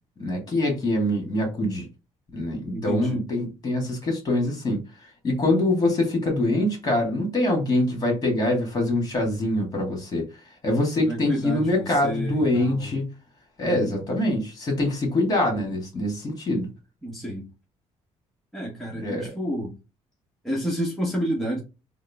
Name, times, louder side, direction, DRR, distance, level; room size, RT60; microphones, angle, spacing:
voice 1, 0.2-1.8 2.3-4.8 5.2-10.3 10.6-13.1 13.6-16.7 18.9-19.3, left 1 dB, 35° left, 1.8 m, -24 dB
voice 2, 2.7-3.2 11.0-13.0 13.6-14.0 17.0-17.4 18.5-19.7 20.4-21.6, equal, ahead, 1.1 m, -30 dB
3.6 x 2.0 x 3.4 m
cardioid pair, 105°, 12 cm